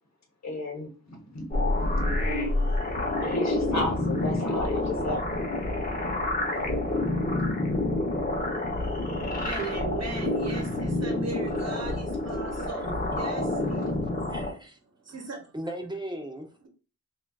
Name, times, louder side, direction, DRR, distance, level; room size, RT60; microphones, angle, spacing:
voice 1, 0.4-2.3 2.6-2.7 3.0-5.4 6.2-6.9, left 2 dB, 65° left, 2 dB, 0.9 m, -34 dB
sound 1, 1.5-14.5, left 2 dB, 30° left, 0.8 m, -28 dB
voice 2, 9.4-13.9 15.0-15.5, right 4 dB, 60° right, 2 dB, 0.9 m, -38 dB
voice 3, 12.6-13.2 13.6-13.7 14.3-14.8 15.5-16.5, right 1 dB, 15° right, 4 dB, 0.5 m, -37 dB
3.7 x 2.3 x 2.3 m, 0.35 s
wide cardioid pair, 90°, 29 cm